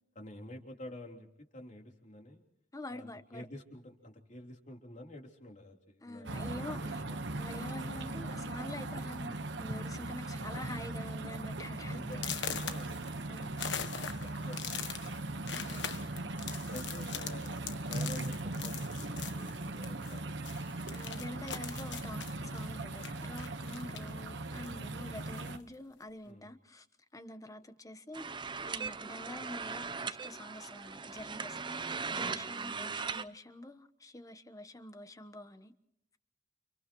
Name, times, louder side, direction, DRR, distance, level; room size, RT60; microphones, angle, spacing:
voice 1, 0.2-1.3 1.5-2.4 2.9-7.2 11.8-15.2 16.1-16.3 16.7-17.5 17.9-20.5 23.7-23.8 26.2-26.5 32.2-32.4, left 1 dB, 45° left, 3.6 m, -50 dB
voice 2, 2.7-3.5 6.0-7.1 7.4-12.3 13.3-13.5 15.4-16.0 20.9-26.9 27.1-28.3 28.6-35.7, left 1 dB, 20° left, 1.1 m, -46 dB
sound 1, 6.2-25.6, right 2 dB, 75° right, 1.2 m, -39 dB
sound 2, 7.6-7.9 8.7-8.8 9.2-9.5 9.8-10.3 10.7-10.8 11.3-11.4 12.1-20.2 20.4-24.2 24.5-25.6, left 8 dB, 70° left, 1.4 m, -42 dB
sound 3, 28.1-33.2, right 5 dB, 25° right, 0.7 m, -39 dB
30.0 x 29.5 x 3.1 m
head